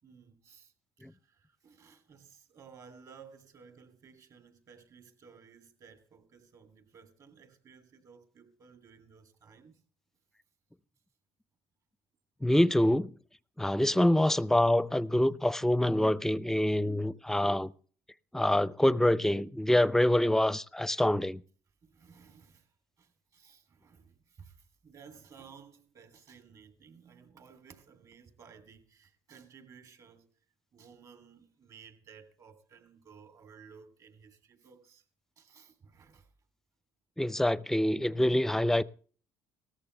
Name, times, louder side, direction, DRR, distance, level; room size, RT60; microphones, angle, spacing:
voice 1, 0.0-9.8 21.8-30.3 30.7-35.0 35.4-36.3, right 6 dB, 50° right, 3.2 m, -56 dB
voice 2, 12.4-13.1 13.6-17.7 18.3-21.4 37.2-38.8, left 1 dB, 5° left, 0.6 m, -26 dB
18.0 x 14.0 x 3.4 m
supercardioid pair, 90°, 8 cm